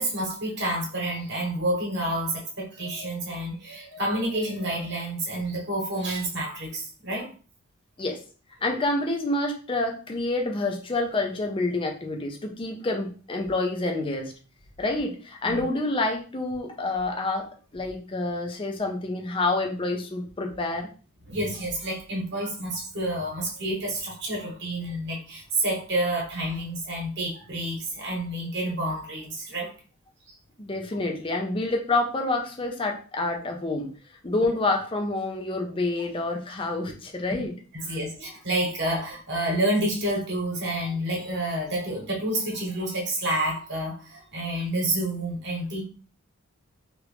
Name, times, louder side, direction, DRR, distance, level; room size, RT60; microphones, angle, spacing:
voice 1, 0.0-7.3 15.4-15.6 21.3-29.7 30.3-30.4 37.3-37.4 37.7-45.8, right 1 dB, 50° right, -1 dB, 1.1 m, -29 dB
voice 2, 8.6-14.3 14.8-17.5 17.7-20.9 30.6-33.9 34.2-37.5, left 2 dB, 25° left, 3 dB, 0.5 m, -28 dB
3.0 x 2.5 x 3.4 m, 0.38 s
head